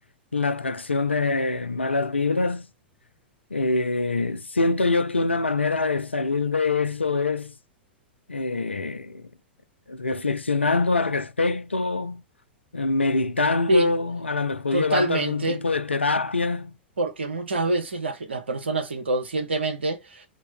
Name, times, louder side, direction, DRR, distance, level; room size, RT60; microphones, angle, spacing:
voice 1, 0.3-2.7 3.5-7.5 8.3-9.2 9.9-12.2 12.7-16.7, left 3 dB, 90° left, 0.4 m, -24 dB
voice 2, 14.7-15.6 17.0-20.2, right 2 dB, 75° right, 0.7 m, -26 dB
2.7 x 2.6 x 4.3 m
figure-of-eight pair, 100°, 6 cm